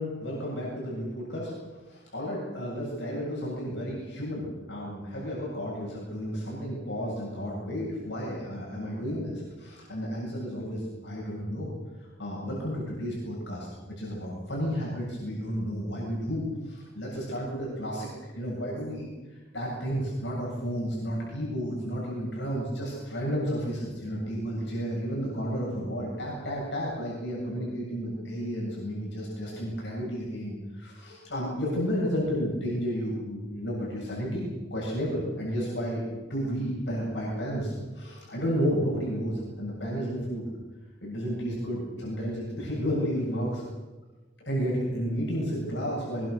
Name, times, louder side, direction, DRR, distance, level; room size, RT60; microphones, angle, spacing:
voice 1, 0.0-1.5 1.9-11.7 12.2-13.7 14.0-18.1 18.3-19.1 19.5-40.5 41.0-43.6 44.4-46.3, equal, 65° left, -4 dB, 8.0 m, -32 dB
23.5 x 23.0 x 6.6 m, 1.2 s
head